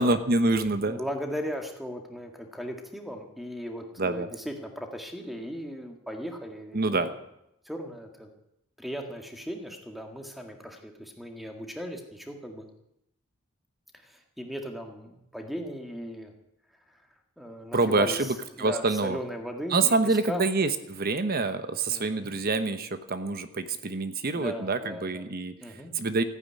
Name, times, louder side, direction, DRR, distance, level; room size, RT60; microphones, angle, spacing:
voice 1, 0.0-1.0 4.0-4.3 6.7-7.1 17.7-19.2 19.7-25.5 25.9-26.2, right 3 dB, 45° right, 10 dB, 1.0 m, -26 dB
voice 2, 0.8-7.1 7.7-8.3 8.8-12.7 13.9-16.3 16.9-17.0 17.4-20.4 21.9-22.3 24.3-25.3 25.6-25.9, equal, ahead, 3 dB, 1.9 m, -37 dB
15.0 x 9.6 x 9.7 m, 0.82 s
head